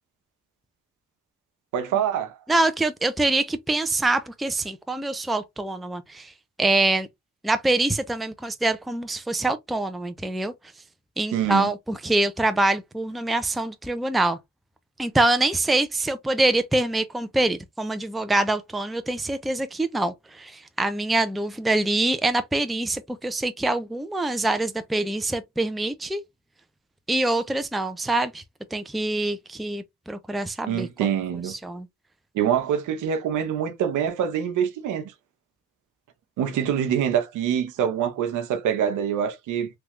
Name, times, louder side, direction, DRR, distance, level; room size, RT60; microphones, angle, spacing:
voice 1, 1.7-2.4 11.3-11.7 30.7-31.5 32.3-35.1 36.4-39.7, right 9 dB, 80° right, 0.8 m, -25 dB
voice 2, 2.5-6.3 6.6-7.1 7.4-10.5 11.2-14.4 15.0-26.2 27.1-28.4 28.7-31.1 31.4-31.9, right 2 dB, ahead, 0.4 m, -25 dB
3.3 x 2.4 x 3.0 m
cardioid pair, 90°, 30 cm